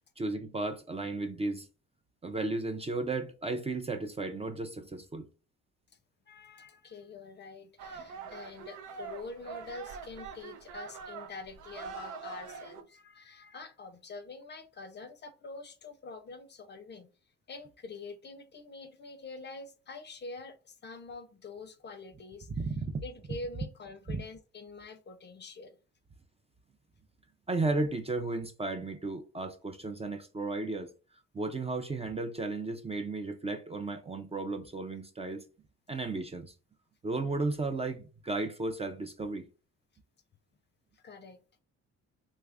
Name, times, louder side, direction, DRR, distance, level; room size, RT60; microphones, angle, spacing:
voice 1, 0.2-1.7 2.2-5.3 22.6-23.0 24.1-24.2 27.5-30.9 31.3-35.4 35.9-36.5 37.0-39.5, right 3 dB, 20° right, 0.4 m, -34 dB
voice 2, 6.3-17.1 17.5-22.5 23.0-25.8 40.9-41.4, left 3 dB, 35° left, 0.5 m, -46 dB
sound 1, 7.8-12.8, right 5 dB, 80° right, 0.6 m, -44 dB
3.1 x 2.4 x 3.4 m
cardioid pair, 90°, 30 cm